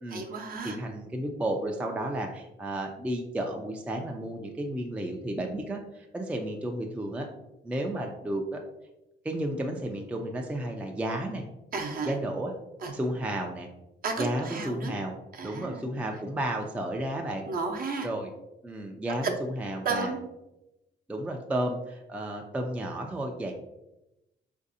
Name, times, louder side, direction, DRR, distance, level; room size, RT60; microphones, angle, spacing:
voice 1, 0.1-0.8 11.7-12.2 12.8-12.9 14.0-14.9 15.3-15.8 17.5-18.1 19.8-20.2, right 4 dB, 45° right, 2 dB, 0.6 m, -33 dB
voice 2, 0.6-7.3 7.6-8.6 9.2-11.4 12.1-12.5 12.9-13.7 14.2-15.2 15.4-17.4 18.0-18.3 18.6-20.1 21.1-23.5, right 1 dB, 5° right, 2 dB, 0.3 m, -32 dB
4.0 x 2.6 x 2.6 m, 0.92 s
cardioid pair, 90°, 20 cm